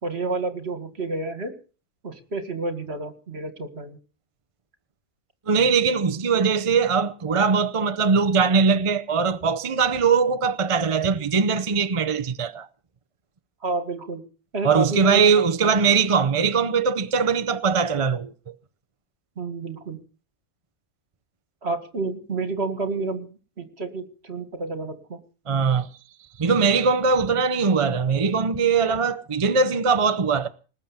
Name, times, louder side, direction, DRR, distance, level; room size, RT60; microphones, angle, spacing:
voice 1, 0.0-1.5 2.0-4.0 13.6-14.2 14.5-15.7 19.4-20.0 21.6-23.3 23.6-25.2, right 3 dB, 50° right, 2.3 m, -30 dB
voice 2, 5.5-12.7 14.6-18.5 25.5-25.9 26.4-30.5, right 5 dB, 35° right, 0.6 m, -21 dB
19.5 x 8.2 x 7.2 m
omnidirectional pair, 1.4 m